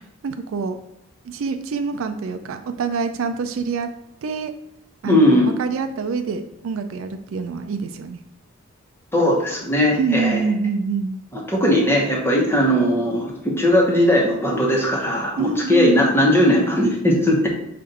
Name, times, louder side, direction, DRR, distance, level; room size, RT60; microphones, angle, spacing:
voice 1, 0.2-0.8 1.2-3.9 4.2-4.5 5.0-8.2 9.9-11.2 15.4-16.1, right 4 dB, 70° right, 8 dB, 0.4 m, -25 dB
voice 2, 5.0-5.5 9.1-10.4 11.3-17.5, left 1 dB, 10° left, -2 dB, 0.9 m, -18 dB
5.4 x 2.5 x 3.9 m, 0.81 s
head